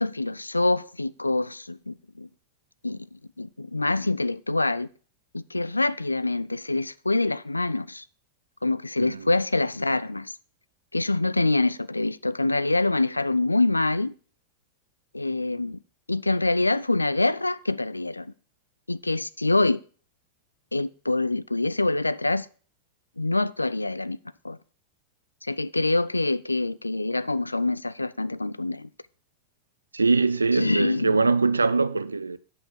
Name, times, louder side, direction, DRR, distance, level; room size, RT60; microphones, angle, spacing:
voice 1, 0.0-2.3 2.8-4.9 5.3-8.0 8.6-10.3 10.9-14.1 15.1-15.8 16.1-18.3 18.9-19.8 20.7-22.5 23.2-24.2 24.4-24.6 25.4-28.9 30.5-31.3, left 2 dB, 85° left, 0.3 m, -25 dB
voice 2, 29.9-32.4, right 4 dB, 80° right, 0.4 m, -22 dB
8.4 x 5.7 x 6.4 m
figure-of-eight pair, 90°, 0 cm